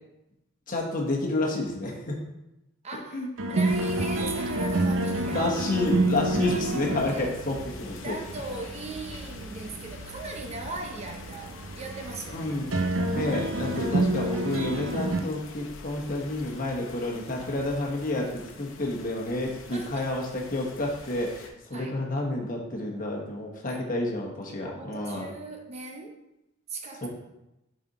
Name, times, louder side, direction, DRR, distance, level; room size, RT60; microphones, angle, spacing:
voice 1, 0.7-2.2 3.1-3.3 4.9-8.1 12.3-12.7 13.1-25.3 27.0-27.1, left 2 dB, 40° left, -1 dB, 1.2 m, -30 dB
voice 2, 2.8-5.6 6.1-7.4 7.9-12.6 19.7-20.1 21.7-21.9 23.7-23.9 24.5-26.2 26.7-27.1, right 2 dB, 30° right, 3 dB, 0.7 m, -39 dB
sound 1, 3.4-15.2, right 1 dB, 70° right, 0.7 m, -29 dB
sound 2, 3.6-21.5, left 3 dB, 80° left, 0.8 m, -46 dB
6.9 x 4.2 x 4.1 m, 0.90 s
head